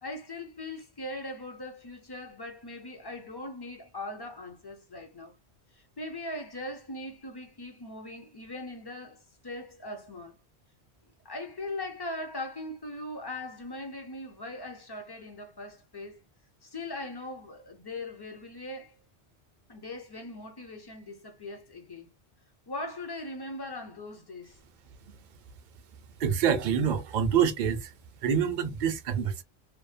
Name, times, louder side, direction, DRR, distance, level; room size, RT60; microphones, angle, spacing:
voice 1, 0.0-5.3 5.7-10.4 11.2-16.2 16.6-18.9 19.7-22.1 22.7-24.6, left 2 dB, 30° left, 0.5 m, -40 dB
voice 2, 26.2-27.9 28.2-29.4, right 7 dB, 55° right, 0.6 m, -26 dB
2.7 x 2.0 x 2.4 m
omnidirectional pair, 1.1 m